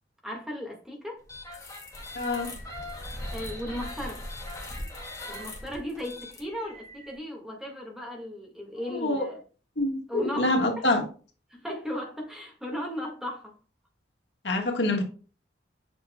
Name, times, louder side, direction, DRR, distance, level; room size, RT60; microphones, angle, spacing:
voice 1, 0.2-1.2 3.3-4.2 5.3-9.4 10.1-10.9 11.5-13.5, equal, 5° right, 1.7 m, -36 dB
sound 1, 1.2-7.2, left 1 dB, 20° left, 2.1 m, -39 dB
voice 2, 2.1-2.5 8.9-9.3 9.8-11.0 14.4-15.0, left 2 dB, 75° left, 1.5 m, -26 dB
7.7 x 5.7 x 2.2 m
head